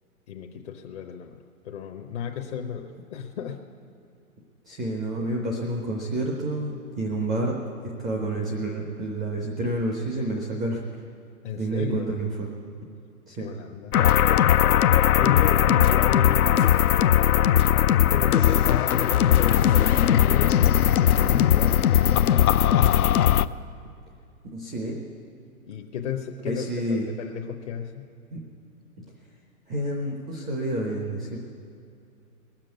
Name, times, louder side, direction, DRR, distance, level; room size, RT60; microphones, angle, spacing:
voice 1, 0.3-3.6 11.4-12.1 13.4-14.0 15.2-16.8 17.8-23.1 25.7-26.6 26.9-28.1, left 8 dB, 50° left, 2 dB, 1.0 m, -34 dB
voice 2, 4.6-7.6 8.0-10.8 11.5-12.5 13.3-13.5 24.5-25.0 26.4-27.1 28.3-28.4 29.0-29.1 29.7-31.4, right 1 dB, ahead, 0 dB, 0.3 m, -29 dB
sound 1, 13.9-23.5, left 10 dB, 75° left, 0.5 m, -19 dB
20.0 x 7.5 x 9.3 m, 2.5 s
hypercardioid pair, 125°, 44 cm